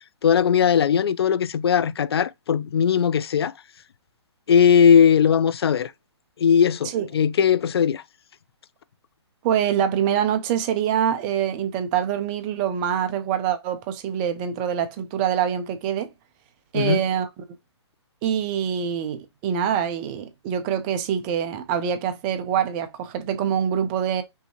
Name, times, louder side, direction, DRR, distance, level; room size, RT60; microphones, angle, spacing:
voice 1, 0.2-3.5 4.5-5.9 6.4-8.0 16.7-17.0, left 7 dB, 60° left, 0.4 m, -19 dB
voice 2, 9.4-16.1 16.7-17.4 18.2-24.2, right 9 dB, 20° right, 0.4 m, -25 dB
5.5 x 2.7 x 2.9 m
hypercardioid pair, 155°, 15 cm